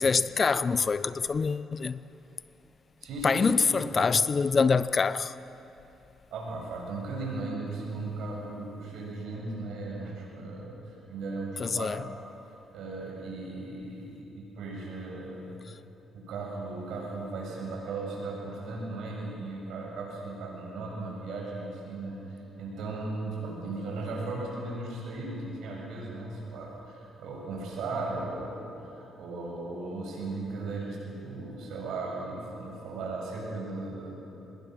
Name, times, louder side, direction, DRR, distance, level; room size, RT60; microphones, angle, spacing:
voice 1, 0.0-2.0 3.2-5.3 11.6-12.0, left 5 dB, 40° left, 0.6 m, -25 dB
voice 2, 3.0-3.7 3.9-4.2 6.3-11.9 12.7-15.6 16.1-34.1, right 3 dB, 80° right, 7.4 m, -37 dB
25.0 x 21.0 x 6.2 m
cardioid pair, 90°, 0 cm